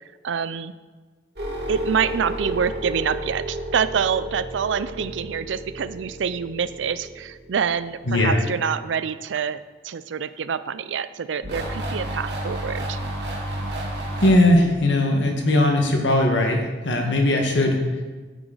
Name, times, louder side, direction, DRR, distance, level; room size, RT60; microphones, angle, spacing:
voice 1, 0.2-0.7 1.7-13.0, right 7 dB, 80° right, 14 dB, 0.4 m, -26 dB
sound 1, 1.4-7.8 11.4-14.3, right 1 dB, 60° right, 2.0 m, -31 dB
voice 2, 8.1-8.4 14.2-17.8, left 1 dB, 75° left, 2 dB, 1.4 m, -19 dB
9.1 x 7.9 x 3.9 m, 1.3 s
head